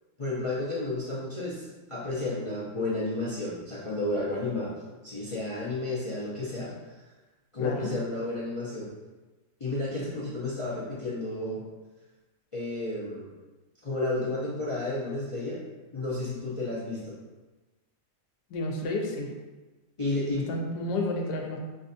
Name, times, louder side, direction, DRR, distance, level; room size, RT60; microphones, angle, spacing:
voice 1, 0.2-4.7 5.0-7.0 7.5-8.9 9.6-11.6 12.5-13.3 13.8-15.6 15.9-17.2 20.0-20.5, left 2 dB, 45° left, -7 dB, 0.4 m, -32 dB
voice 2, 7.6-7.9 18.5-19.3 20.5-21.6, left 2 dB, 85° left, 1 dB, 1.3 m, -31 dB
6.2 x 2.7 x 2.6 m, 1.2 s
omnidirectional pair, 1.8 m